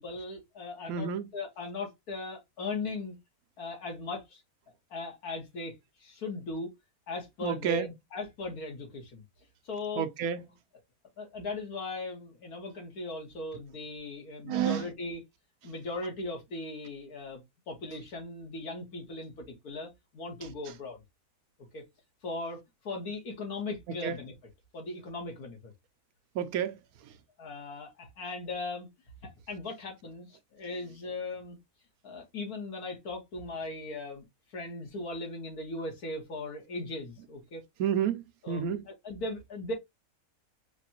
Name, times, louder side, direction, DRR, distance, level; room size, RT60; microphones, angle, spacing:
voice 1, 0.0-3.2 3.6-4.4 4.9-6.7 7.1-9.2 9.6-10.1 11.2-15.2 15.6-21.0 21.7-21.8 22.2-24.3 24.7-25.7 27.4-28.9 29.5-31.6 32.0-37.6 38.4-39.7, left 2 dB, 80° left, 2.0 m, -38 dB
voice 2, 0.9-1.3 7.4-7.9 10.0-10.4 14.5-14.8 24.0-24.2 26.3-26.8 37.8-38.9, right 8 dB, 75° right, 1.0 m, -30 dB
5.1 x 2.4 x 2.7 m
omnidirectional pair, 1.6 m